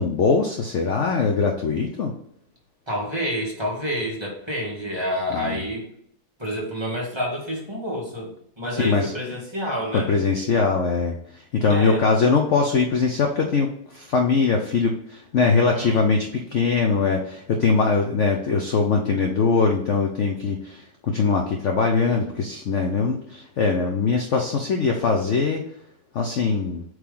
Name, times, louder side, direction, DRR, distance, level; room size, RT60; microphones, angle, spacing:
voice 1, 0.0-2.1 5.3-5.6 8.8-9.1 9.9-25.6 26.1-26.8, left 4 dB, 55° left, 3 dB, 0.9 m, -22 dB
voice 2, 2.9-5.9 6.4-10.1 11.7-12.4 15.6-16.1, equal, 15° right, -4 dB, 1.8 m, -29 dB
8.0 x 3.4 x 3.7 m, 0.71 s
omnidirectional pair, 1.9 m